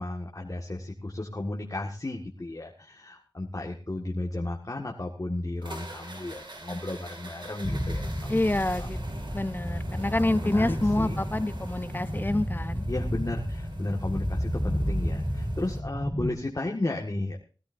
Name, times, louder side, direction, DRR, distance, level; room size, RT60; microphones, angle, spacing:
voice 1, 0.0-8.4 8.8-8.9 10.1-11.2 12.9-17.4, left 2 dB, 40° left, 0 dB, 2.0 m, -34 dB
sound 1, 5.6-15.8, right 2 dB, 60° right, 2.4 m, -43 dB
sound 2, 7.6-16.3, equal, 5° left, 1.7 m, -32 dB
voice 2, 8.3-9.0 9.3-12.8, left 1 dB, 25° left, 13 dB, 0.9 m, -27 dB
20.0 x 13.5 x 2.7 m, 0.36 s
wide cardioid pair, 55°, 9 cm